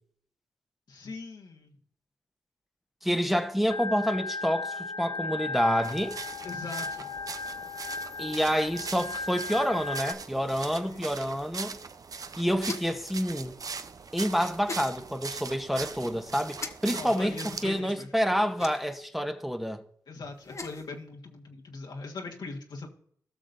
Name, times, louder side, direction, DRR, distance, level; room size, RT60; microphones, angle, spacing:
voice 1, 0.9-1.8 6.4-7.1 10.8-11.1 16.9-18.1 20.1-22.9, left 3 dB, 70° left, 1.6 m, -41 dB
voice 2, 3.0-6.2 8.2-11.8 12.4-13.6 14.1-17.4 17.6-19.8, equal, ahead, 1.1 m, -28 dB
Organ, 3.7-10.1, left 3 dB, 90° left, 0.7 m, -36 dB
sound 1, 5.8-17.8, right 5 dB, 55° right, 0.7 m, -41 dB
sound 2, 12.6-13.1 14.7-14.9 16.6-16.7 18.6-19.0 20.4-20.9, left 3 dB, 45° left, 1.1 m, -38 dB
17.0 x 6.2 x 2.7 m
cardioid pair, 50°, 7 cm